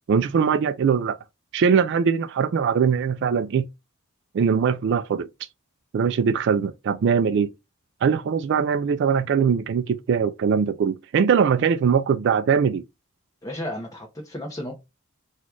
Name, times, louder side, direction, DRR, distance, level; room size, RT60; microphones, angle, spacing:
voice 1, 0.1-1.2 1.5-3.7 4.3-5.3 5.9-7.5 8.0-12.8, right 6 dB, 60° right, 0.3 m, -21 dB
voice 2, 13.4-14.7, left 1 dB, 15° left, 0.8 m, -33 dB
4.1 x 2.3 x 4.5 m
head